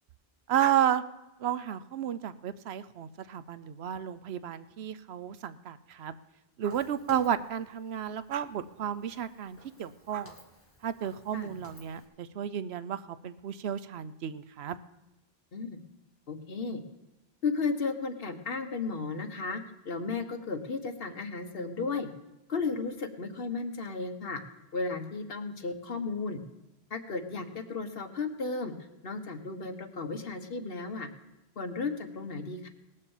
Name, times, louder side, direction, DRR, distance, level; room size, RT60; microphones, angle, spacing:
voice 1, 0.5-1.0 1.4-6.1 6.6-10.3 10.8-14.8, right 10 dB, 90° right, 13 dB, 0.9 m, -32 dB
Walk footsteps, 6.7-12.0, equal, 15° left, 1.8 m, -56 dB
voice 2, 16.3-16.8 17.4-22.1 22.5-24.4 24.7-26.4 26.9-28.7 29.0-31.1 31.6-32.7, left 4 dB, 65° left, 6 dB, 1.4 m, -34 dB
19.0 x 6.5 x 7.2 m, 0.98 s
omnidirectional pair, 1.0 m